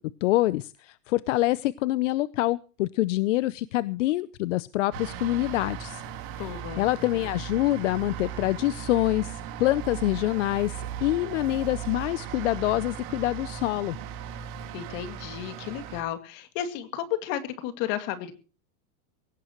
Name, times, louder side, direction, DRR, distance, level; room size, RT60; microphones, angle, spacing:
voice 1, 0.2-6.0 6.8-14.0, left 16 dB, 55° left, 17 dB, 0.7 m, -26 dB
sound 1, 4.9-16.0, right 9 dB, 40° right, 3.5 m, -37 dB
voice 2, 6.4-6.8 14.7-18.3, left 11 dB, 40° left, 9 dB, 2.3 m, -33 dB
20.5 x 17.5 x 3.1 m, 0.37 s
supercardioid pair, 170°, 44 cm